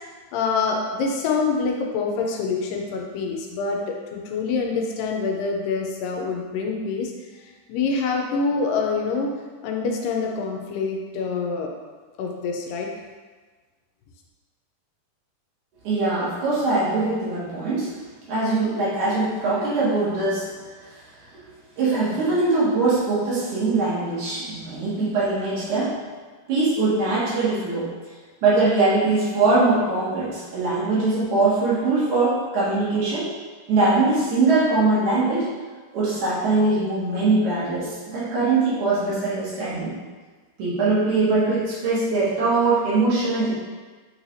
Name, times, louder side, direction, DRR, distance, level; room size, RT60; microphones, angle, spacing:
voice 1, 0.3-7.1 7.7-9.3 9.6-11.7 12.2-12.9, left 4 dB, 90° left, 1 dB, 2.3 m, -26 dB
voice 2, 15.8-17.9 18.3-20.5 21.8-25.9 26.5-27.9 28.4-33.3 33.7-35.4 35.9-39.9 40.6-43.5, right 3 dB, 70° right, -9 dB, 2.6 m, -22 dB
6.2 x 3.2 x 2.6 m, 1.4 s
omnidirectional pair, 3.9 m